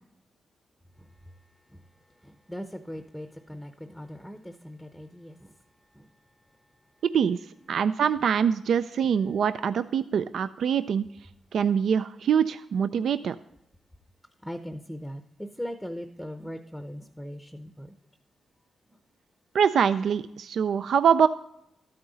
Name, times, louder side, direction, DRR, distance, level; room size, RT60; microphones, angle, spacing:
voice 1, 1.0-1.4 1.7-1.8 2.1-5.6 5.9-6.1 7.7-7.8 9.0-9.1 11.7-11.8 14.4-18.0, equal, ahead, 0.7 m, -40 dB
voice 2, 7.0-7.4 7.7-11.0 11.5-13.4 19.5-21.3, right 7 dB, 75° right, 0.3 m, -24 dB
13.0 x 8.6 x 4.0 m
cardioid pair, 100°, 0 cm